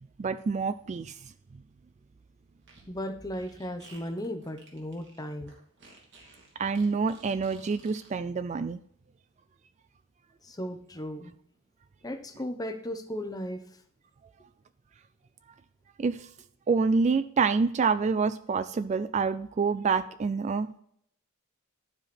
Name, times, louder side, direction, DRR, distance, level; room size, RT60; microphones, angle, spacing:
voice 1, 0.2-1.1 6.6-8.8 16.0-16.3 16.7-20.7, right 5 dB, 35° right, 13 dB, 0.3 m, -27 dB
Fart, 2.6-8.1, right 2 dB, 55° right, 2.6 m, -54 dB
voice 2, 2.9-5.5 10.4-11.3 12.0-13.6, equal, 20° left, 7 dB, 0.8 m, -36 dB
12.5 x 4.9 x 4.3 m, 0.66 s
head